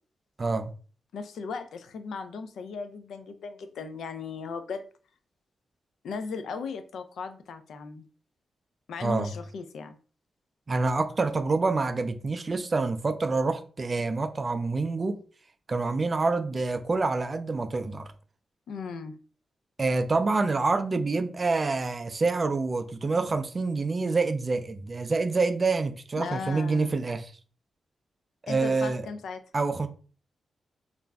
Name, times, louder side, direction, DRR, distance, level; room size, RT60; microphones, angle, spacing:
voice 1, 0.4-0.7 9.0-9.3 10.7-15.2 15.7-18.1 19.8-27.3 28.4-29.1 29.5-29.9, right 3 dB, 35° right, 0.3 m, -27 dB
voice 2, 1.1-4.8 6.0-8.1 8.9-10.0 18.7-19.2 26.2-27.0 28.5-29.4, left 5 dB, 85° left, 0.3 m, -37 dB
2.4 x 2.1 x 3.3 m
cardioid pair, 105°, 0 cm